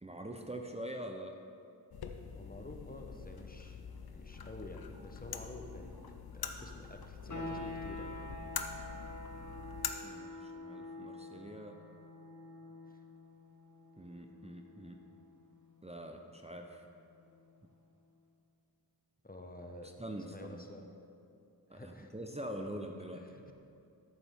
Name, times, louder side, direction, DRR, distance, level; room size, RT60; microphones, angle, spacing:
voice 1, 0.0-1.4 10.0-11.8 14.0-15.0 15.8-16.9 20.0-20.6 21.7-23.3, right 1 dB, 15° right, 3 dB, 0.7 m, -44 dB
sound 1, 1.9-9.9, left 6 dB, 75° left, 0.7 m, -44 dB
voice 2, 2.3-3.8 4.1-6.0 6.3-8.3 12.9-13.0 19.2-19.9 20.2-20.9 21.7-22.1 23.1-23.5, left 1 dB, 25° left, 3 dB, 0.9 m, -50 dB
sound 2, 3.2-3.7 4.0-9.8, equal, 90° right, 2.1 m, -65 dB
sound 3, 7.3-17.8, left 2 dB, 50° left, 1.2 m, -48 dB
13.0 x 7.1 x 3.6 m, 2.6 s
wide cardioid pair, 60°, 37 cm